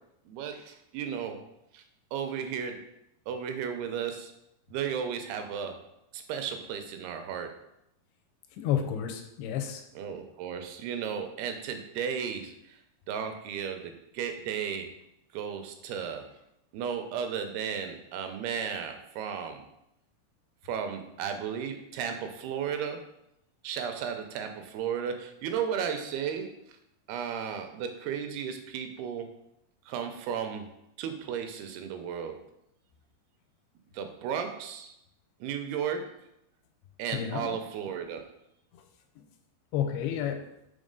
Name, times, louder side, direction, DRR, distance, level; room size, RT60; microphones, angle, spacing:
voice 1, 0.3-1.4 1.7-1.8 2.1-2.8 3.3-4.3 4.7-5.7 6.1-7.5 10.0-12.8 13.1-14.9 15.3-16.2 16.7-19.6 20.7-23.0 23.6-26.5 27.1-29.3 29.9-30.7 31.0-32.3 33.9-34.9 35.4-36.1 37.0-38.2, right 7 dB, 85° right, 6 dB, 2.6 m, -34 dB
voice 2, 8.6-9.8 37.1-37.5 39.7-40.4, left 9 dB, 85° left, 5 dB, 2.7 m, -30 dB
6.3 x 3.9 x 5.2 m, 0.81 s
omnidirectional pair, 4.5 m